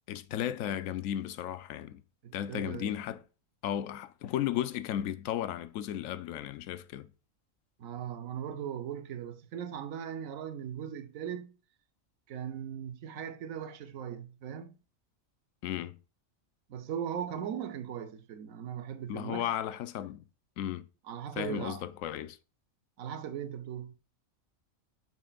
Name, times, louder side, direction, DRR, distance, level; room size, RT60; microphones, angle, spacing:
voice 1, 0.1-2.0 2.3-3.2 3.6-7.1 15.6-16.0 19.1-20.2 20.6-20.9 21.4-22.4, left 11 dB, 80° left, 0.9 m, -34 dB
voice 2, 2.2-2.9 7.8-11.5 12.3-14.8 16.7-19.5 21.1-21.8 23.0-23.9, right 9 dB, 80° right, 1.2 m, -39 dB
8.7 x 6.1 x 2.4 m
omnidirectional pair, 1.4 m